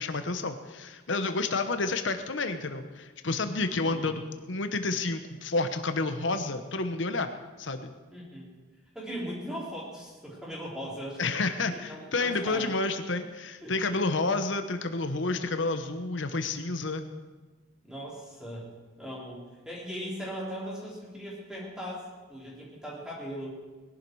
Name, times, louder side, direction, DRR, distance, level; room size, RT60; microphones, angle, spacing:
voice 1, 0.0-7.3 7.6-7.9 11.2-17.1, left 3 dB, 70° left, 8 dB, 1.0 m, -30 dB
voice 2, 3.8-4.2 8.1-8.5 8.9-11.3 11.7-12.8 13.6-14.0 17.8-23.6, equal, 5° right, -5 dB, 4.0 m, -39 dB
20.5 x 11.5 x 4.8 m, 1.3 s
head